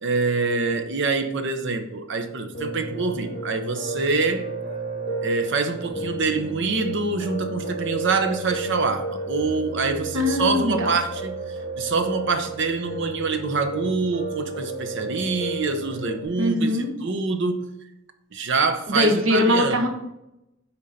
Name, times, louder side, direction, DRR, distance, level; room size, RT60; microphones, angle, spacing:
voice 1, 0.0-4.5 5.2-11.4 11.8-16.7 17.0-17.7 18.3-19.8, right 4 dB, 65° right, 0.8 m, -25 dB
Piano, 2.5-16.3, right 2 dB, 35° left, 2.5 m, -32 dB
voice 2, 10.1-10.9 16.4-16.9 18.9-19.9, left 1 dB, 85° right, 1.3 m, -21 dB
8.6 x 4.5 x 4.2 m
head